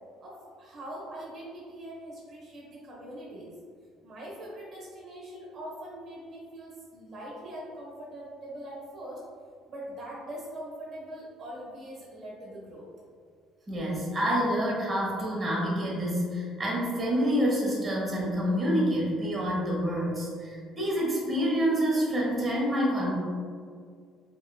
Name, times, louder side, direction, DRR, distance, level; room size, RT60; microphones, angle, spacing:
voice 1, 0.2-3.5 4.0-9.2 9.7-12.9, right 1 dB, 50° right, -5 dB, 1.1 m, -42 dB
voice 2, 13.7-23.1, equal, 25° right, -5 dB, 1.2 m, -27 dB
5.5 x 2.9 x 2.3 m, 2.1 s
cardioid pair, 105°, 0 cm